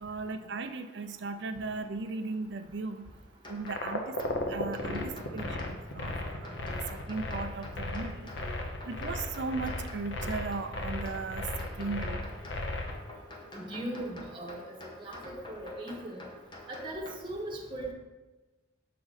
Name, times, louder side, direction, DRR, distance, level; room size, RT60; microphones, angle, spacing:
voice 1, 0.0-3.1 3.5-4.1 4.5-5.6 5.9-8.3 8.9-12.2, right 3 dB, 60° right, 8 dB, 0.5 m, -37 dB
sound 1, 3.4-17.2, left 1 dB, 25° left, 0.9 m, -48 dB
sound 2, 3.6-13.0, left 2 dB, 65° left, 0.8 m, -35 dB
voice 2, 13.5-14.6 15.0-15.2 15.5-16.2 16.7-17.9, right 1 dB, 25° right, -1 dB, 1.2 m, -38 dB
6.6 x 4.8 x 4.0 m, 1.1 s
head